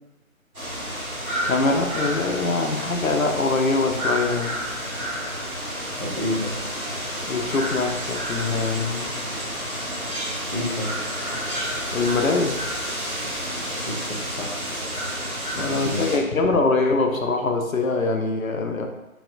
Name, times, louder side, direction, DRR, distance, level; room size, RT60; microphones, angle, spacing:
sound 1, 0.5-16.2, equal, 85° right, 1.5 m, -30 dB
voice 1, 1.0-4.6 7.3-9.2 11.9-12.6 15.6-18.9, left 3 dB, 70° left, 4 dB, 0.5 m, -23 dB
voice 2, 6.0-6.6 10.5-10.9 13.8-14.7 15.5-16.1, left 1 dB, 35° right, -4 dB, 0.5 m, -29 dB
4.0 x 2.2 x 2.5 m, 1.0 s
figure-of-eight pair, 155°, 43 cm